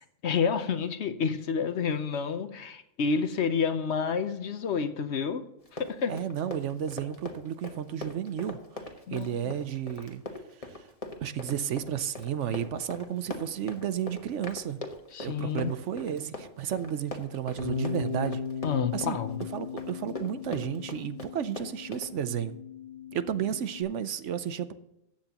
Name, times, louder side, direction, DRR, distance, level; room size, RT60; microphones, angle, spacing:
voice 1, 0.0-5.4 5.7-6.1 9.1-9.5 15.1-15.8 18.6-19.4, left 6 dB, 60° left, 10 dB, 1.0 m, -29 dB
Run, 5.6-22.1, left 2 dB, 30° left, 1.3 m, -41 dB
voice 2, 6.1-8.6 9.1-10.2 10.6-10.9 11.2-14.8 15.2-18.4 18.9-19.2 19.5-22.6 23.1-24.7, right 9 dB, 70° right, 12 dB, 0.9 m, -32 dB
Bass guitar, 17.6-23.8, left 6 dB, 40° right, 1.9 m, -37 dB
14.5 x 9.0 x 2.9 m, 0.84 s
omnidirectional pair, 1.4 m